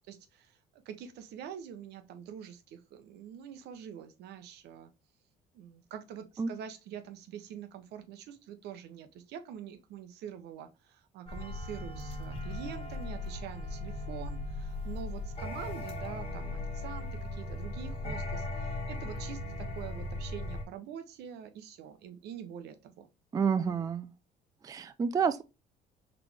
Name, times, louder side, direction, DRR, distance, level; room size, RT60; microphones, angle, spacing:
voice 1, 0.1-4.9 5.5-23.1, right 9 dB, 75° right, 0.8 m, -45 dB
sound 1, 11.3-20.6, left 2 dB, 35° left, 1.4 m, -38 dB
voice 2, 23.3-24.1 24.6-25.4, right 6 dB, 20° right, 0.3 m, -29 dB
4.1 x 3.3 x 3.2 m
cardioid pair, 110°, 17 cm